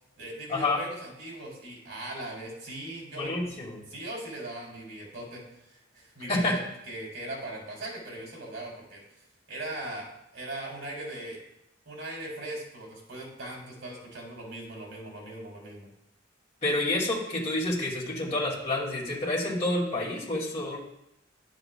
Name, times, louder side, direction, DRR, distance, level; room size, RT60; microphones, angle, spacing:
voice 1, 0.2-3.3 3.9-5.4 5.7-6.6 6.9-9.0 9.5-11.4 11.8-15.9, right 1 dB, 85° right, -2 dB, 3.1 m, -39 dB
voice 2, 3.2-3.8 6.3-6.6 16.6-20.8, left 2 dB, 35° left, -5 dB, 2.5 m, -28 dB
11.0 x 7.2 x 2.3 m, 0.82 s
head